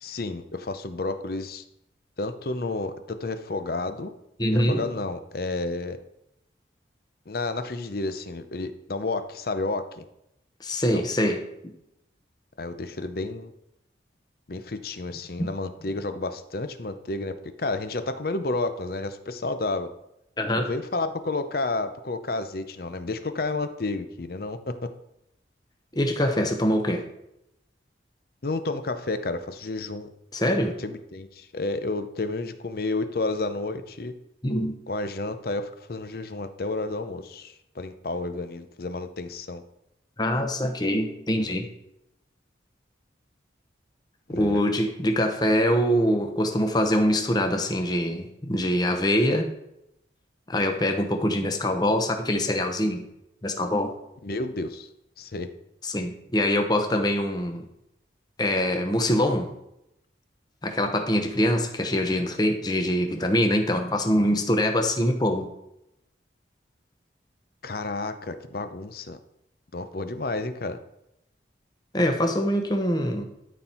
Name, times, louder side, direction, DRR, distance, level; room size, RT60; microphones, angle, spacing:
voice 1, 0.0-1.6 2.2-4.1 4.7-6.0 7.3-10.0 10.9-11.1 12.6-13.5 14.5-19.9 20.6-24.9 28.4-30.1 30.8-34.1 34.9-39.6 44.3-44.6 54.2-54.9 55.2-55.5 67.6-69.2 69.7-70.8, left 2 dB, 50° left, 10 dB, 0.7 m, -31 dB
voice 2, 4.4-4.9 10.6-11.7 15.4-15.5 20.4-20.7 25.9-27.1 30.3-30.8 34.4-34.8 40.2-41.7 44.3-49.5 50.5-53.0 53.4-53.9 55.8-57.7 58.4-59.5 60.6-65.5 71.9-73.2, equal, 20° left, 5 dB, 0.9 m, -24 dB
12.5 x 4.3 x 4.4 m, 0.82 s
head